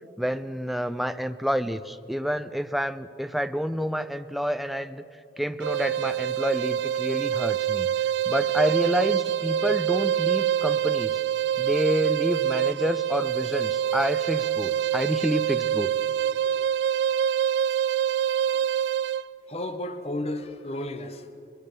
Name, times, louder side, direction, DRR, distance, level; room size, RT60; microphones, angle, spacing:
voice 1, 0.2-5.0 5.4-7.9 8.3-11.2 11.6-15.9, equal, ahead, 0.5 m, -28 dB
sound 1, 5.6-19.3, right 9 dB, 80° right, 0.4 m, -25 dB
voice 2, 18.1-18.9 19.5-21.3, left 1 dB, 35° left, 1.1 m, -34 dB
22.5 x 19.0 x 6.8 m
head